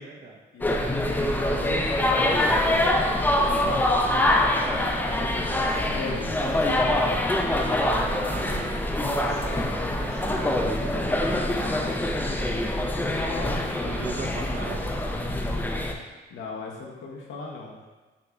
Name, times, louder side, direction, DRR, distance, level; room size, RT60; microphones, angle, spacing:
voice 1, 0.0-0.4 7.7-11.0 13.9-14.9, right 4 dB, 55° right, -1 dB, 0.7 m, -39 dB
voice 2, 0.5-4.9 5.2-7.1 13.3-14.0 16.3-17.8, left 4 dB, 75° left, -1 dB, 0.8 m, -39 dB
sound 1, 0.6-15.9, left 1 dB, 10° left, 0.4 m, -24 dB
5.2 x 2.8 x 2.3 m, 1.3 s
cardioid pair, 90°, 20 cm